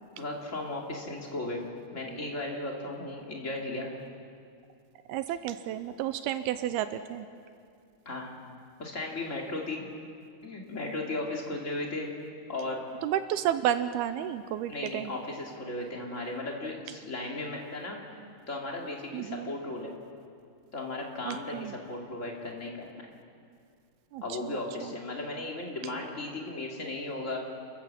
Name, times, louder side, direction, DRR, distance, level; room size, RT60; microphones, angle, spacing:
voice 1, 0.2-1.6 1.9-3.9 8.1-8.3 8.8-9.8 10.4-12.1 12.5-12.8 14.7-18.0 18.5-20.0 20.7-23.1 24.2-27.4, left 2 dB, 25° left, -1 dB, 2.1 m, -36 dB
voice 2, 5.1-7.3 13.0-15.1 19.1-19.5 21.3-21.7 24.1-24.6 24.8-24.9, right 11 dB, 80° right, 11 dB, 2.5 m, -31 dB
29.0 x 14.0 x 7.5 m, 2.3 s
omnidirectional pair, 4.7 m